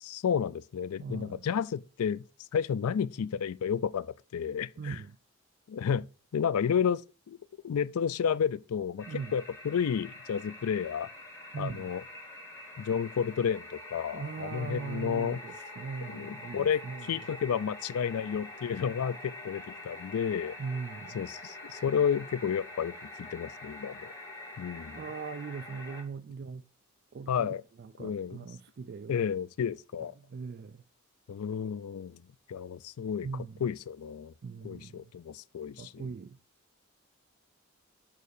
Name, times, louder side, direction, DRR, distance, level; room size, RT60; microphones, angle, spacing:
voice 1, 0.0-2.2 2.5-5.0 5.7-6.0 6.3-7.0 7.3-7.4 7.6-11.1 11.6-12.0 12.8-15.4 16.1-20.6 21.1-24.1 24.6-25.0 27.3-27.6 28.0-28.4 29.1-30.1 31.3-32.2 32.5-34.3 34.6-36.1, left 7 dB, 85° left, 0.4 m, -31 dB
voice 2, 1.0-1.4 4.8-5.2 9.1-9.3 11.5-11.9 14.1-17.0 20.6-21.2 24.9-26.6 27.1-29.1 30.2-30.8 33.2-33.6 34.4-35.1 35.8-36.4, right 5 dB, 45° right, 0.3 m, -40 dB
sound 1, 9.0-26.0, left 1 dB, 15° left, 2.0 m, -46 dB
6.1 x 4.6 x 6.5 m
head